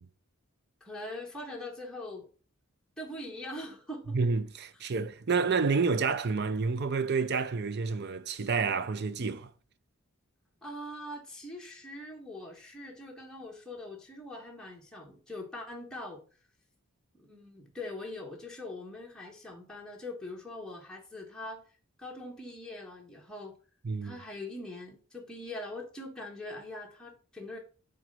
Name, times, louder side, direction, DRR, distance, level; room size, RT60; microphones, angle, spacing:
voice 1, 0.8-2.3 3.0-4.2 10.6-16.2 17.1-21.6 22.0-23.6 24.0-27.6, left 1 dB, 5° left, 1.4 m, -42 dB
voice 2, 4.1-9.5 23.8-24.2, right 4 dB, 50° right, 0.5 m, -29 dB
6.0 x 4.1 x 5.5 m
head